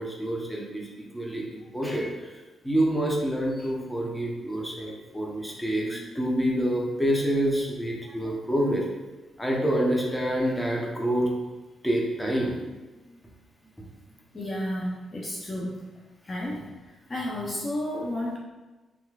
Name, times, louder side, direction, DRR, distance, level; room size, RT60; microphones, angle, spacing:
voice 1, 0.0-2.3 2.6-8.8 9.4-11.3 11.8-12.8, right 1 dB, 10° left, -2 dB, 0.9 m, -27 dB
voice 2, 14.3-15.9 16.3-16.7 17.1-18.4, left 1 dB, 35° left, -3 dB, 0.6 m, -31 dB
3.5 x 3.0 x 2.4 m, 1.2 s
hypercardioid pair, 45°, 0 cm